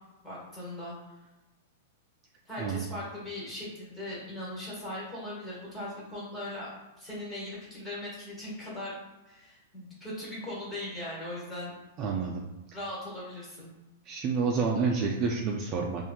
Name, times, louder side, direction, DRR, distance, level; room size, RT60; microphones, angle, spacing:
voice 1, 0.2-0.9 2.5-6.7 7.0-9.0 9.3-11.7 12.7-13.7, left 1 dB, 10° left, -7 dB, 1.2 m, -39 dB
voice 2, 12.0-12.4 14.1-16.1, right 5 dB, 30° right, -1 dB, 0.3 m, -29 dB
2.8 x 2.4 x 2.2 m, 1.1 s
hypercardioid pair, 150°, 0 cm